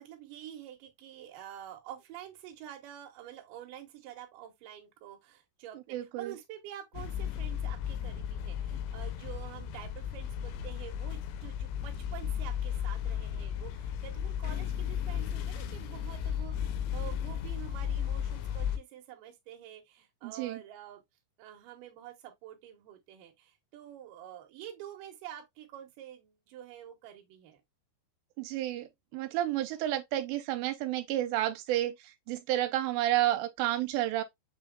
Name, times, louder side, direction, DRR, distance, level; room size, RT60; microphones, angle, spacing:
voice 1, 0.0-21.0 21.4-27.6, right 11 dB, 70° right, 2.3 m, -48 dB
voice 2, 5.7-6.3 20.2-20.6 28.4-34.2, right 14 dB, 85° right, 2.9 m, -31 dB
sound 1, 6.9-18.8, left 9 dB, 85° left, 2.9 m, -35 dB
6.8 x 3.4 x 2.2 m
omnidirectional pair, 5.0 m